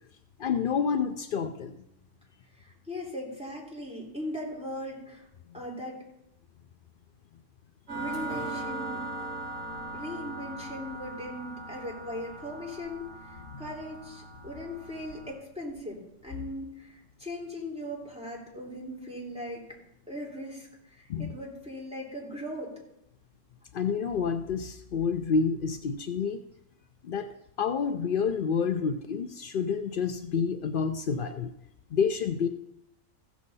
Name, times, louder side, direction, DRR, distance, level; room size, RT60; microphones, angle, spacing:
voice 1, 0.4-1.8 9.7-9.8 21.1-21.4 23.7-26.4 27.0-31.5 31.9-32.5, left 6 dB, 80° left, 7 dB, 0.4 m, -29 dB
voice 2, 2.6-5.3 5.5-6.0 7.9-9.0 9.9-19.6 20.1-22.7, left 1 dB, 5° right, -4 dB, 3.0 m, -39 dB
sound 1, 7.9-15.3, right 2 dB, 60° right, 5.4 m, -39 dB
15.0 x 7.2 x 4.1 m, 0.81 s
omnidirectional pair, 1.6 m